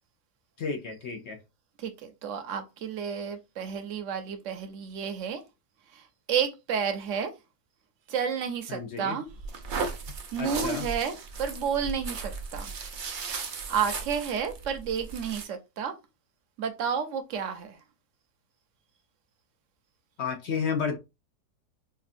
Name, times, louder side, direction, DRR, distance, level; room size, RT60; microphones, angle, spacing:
voice 1, 0.6-1.4 8.7-9.2 10.4-10.9 20.2-21.0, left 6 dB, 60° left, 0.7 m, -31 dB
voice 2, 1.8-5.4 5.9-7.3 8.1-9.3 10.3-12.7 13.7-15.9 16.6-17.8, right 7 dB, 65° right, 0.9 m, -31 dB
sound 1, 9.3-15.4, right 4 dB, 85° right, 0.4 m, -36 dB
4.9 x 2.4 x 2.6 m
omnidirectional pair, 1.7 m